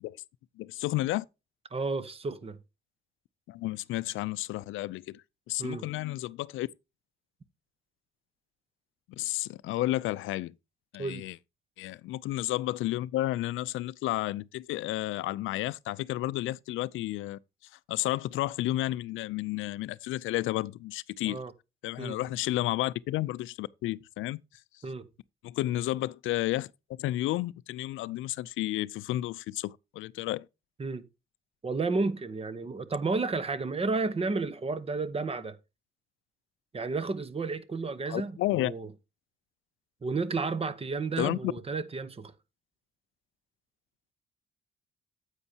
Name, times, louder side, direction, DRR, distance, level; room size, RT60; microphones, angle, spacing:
voice 1, 0.6-1.2 3.5-6.7 9.1-10.5 10.9-11.4 11.8-17.4 17.9-21.4 21.8-24.4 25.4-26.7 27.0-30.5 38.1-38.7 41.2-41.4, left 16 dB, 85° left, 0.4 m, -32 dB
voice 2, 1.7-2.6 5.6-5.9 11.0-11.2 21.3-21.5 22.0-22.2 24.8-25.1 30.8-31.0 31.6-35.6 36.7-38.9 40.0-42.3, right 3 dB, 30° right, 1.0 m, -32 dB
9.6 x 8.1 x 2.8 m
cardioid pair, 90°, 20 cm